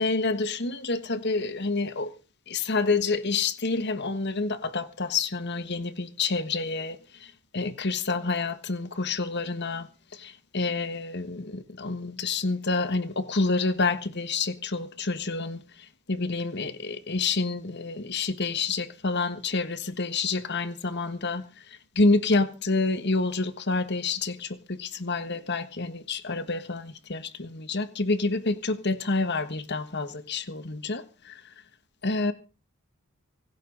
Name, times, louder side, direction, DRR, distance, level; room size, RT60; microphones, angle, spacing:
voice 1, 0.0-2.1 2.5-9.9 10.1-15.6 16.1-21.4 21.9-31.4 32.0-32.3, left 3 dB, 50° left, 1.4 m, -28 dB
25.5 x 11.5 x 3.9 m
head